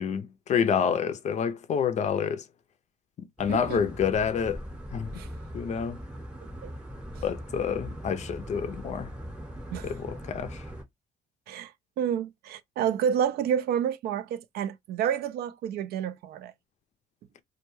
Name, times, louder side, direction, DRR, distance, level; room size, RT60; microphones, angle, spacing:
voice 1, 0.0-2.4 3.2-4.6 4.9-5.2 5.5-6.0 7.2-9.1 9.8-10.6, left 7 dB, 45° left, 0.5 m, -28 dB
sound 1, 3.4-10.8, equal, 5° right, 0.8 m, -40 dB
voice 2, 3.5-3.8 5.1-5.3 6.6-6.7 9.7-9.9 11.5-11.7 12.0-16.5, right 8 dB, 65° right, 0.4 m, -29 dB
2.2 x 2.2 x 3.0 m
cardioid pair, 110°, 17 cm